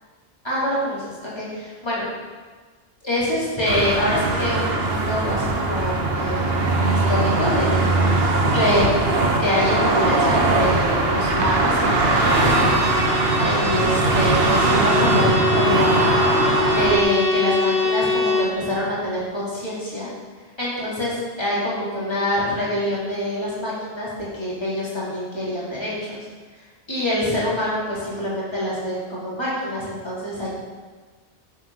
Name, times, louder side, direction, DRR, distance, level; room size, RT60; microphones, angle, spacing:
voice 1, 0.4-2.1 3.0-8.9 9.4-12.6 13.4-20.1 20.6-26.2 26.9-30.5, left 1 dB, 25° left, -8 dB, 3.5 m, -25 dB
sound 1, 3.7-17.0, right 2 dB, 65° right, 1.3 m, -20 dB
sound 2, 5.2-13.1, right 2 dB, 85° right, 1.9 m, -35 dB
Bowed string instrument, 11.9-18.6, left 2 dB, 80° left, 4.5 m, -24 dB
11.5 x 7.4 x 5.7 m, 1.4 s
omnidirectional pair, 1.1 m